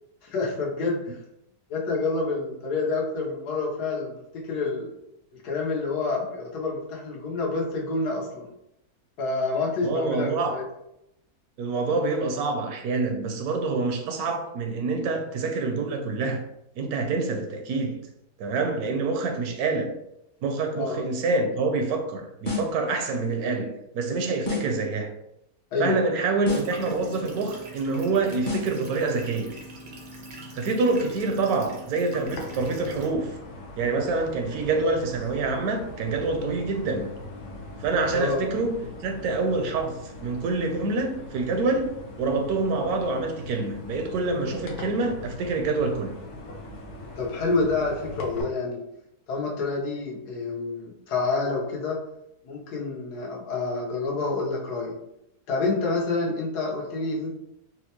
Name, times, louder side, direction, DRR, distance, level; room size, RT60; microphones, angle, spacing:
voice 1, 0.2-1.2 1.7-4.9 5.3-8.5 9.2-10.6 20.8-21.0 25.7-26.0 38.1-38.4 47.2-48.8 49.3-52.0 52.4-54.9 55.5-57.3, left 3 dB, 85° left, -2 dB, 1.4 m, -28 dB
voice 2, 9.8-10.6 11.6-16.4 16.8-18.0 18.4-19.9 20.4-25.1 25.8-29.5 30.5-33.3 33.8-37.1 37.8-39.9 40.2-46.2, right 3 dB, 75° right, 4 dB, 1.0 m, -26 dB
sound 1, 22.4-22.8 24.5-24.8 26.4-26.8 28.5-28.8, left 2 dB, 35° left, 0.7 m, -30 dB
sound 2, 26.5-33.1, right 1 dB, 55° right, 0.5 m, -43 dB
sound 3, 32.2-48.4, left 2 dB, 60° left, 0.8 m, -41 dB
4.2 x 2.2 x 2.8 m, 0.82 s
omnidirectional pair, 1.7 m